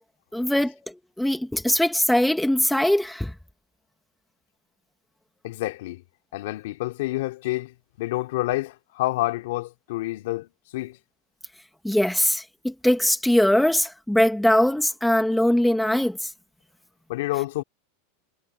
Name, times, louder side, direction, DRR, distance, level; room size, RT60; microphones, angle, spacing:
voice 1, 0.3-0.8 1.2-3.3 11.8-16.3, left 1 dB, ahead, 1.4 m, -21 dB
voice 2, 5.4-6.0 6.3-11.0 17.1-17.6, left 18 dB, 60° left, 2.8 m, -28 dB
supercardioid pair, 170°, 0 cm